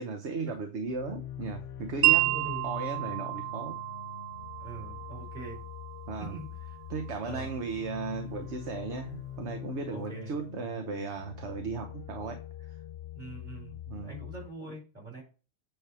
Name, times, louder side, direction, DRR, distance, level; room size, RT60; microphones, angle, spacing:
voice 1, 0.0-2.3 2.6-3.8 6.1-6.4 6.9-12.8 13.9-14.2, right 4 dB, 65° right, 1.3 m, -36 dB
sound 1, 0.8-14.5, left 11 dB, 65° left, 0.8 m, -43 dB
voice 2, 2.0-2.7 4.6-5.6 6.2-6.5 7.2-7.5 9.9-10.3 13.2-15.2, right 2 dB, 35° right, 5.1 m, -43 dB
Wind chime, 2.0-8.1, right 20 dB, 90° right, 1.0 m, -31 dB
9.2 x 3.5 x 5.7 m
omnidirectional pair, 1.3 m